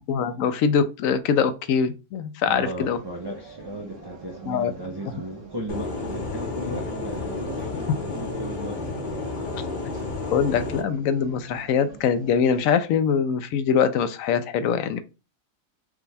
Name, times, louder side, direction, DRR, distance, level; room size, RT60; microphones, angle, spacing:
voice 1, 0.1-3.0 4.5-4.7 10.3-15.0, left 7 dB, 80° left, 1.0 m, -23 dB
voice 2, 2.5-8.8, right 1 dB, 40° right, 0.3 m, -36 dB
sound 1, 2.8-12.6, right 3 dB, 65° right, 1.4 m, -45 dB
sound 2, 5.7-10.8, left 3 dB, 45° left, 0.8 m, -31 dB
5.0 x 2.2 x 3.3 m
omnidirectional pair, 1.4 m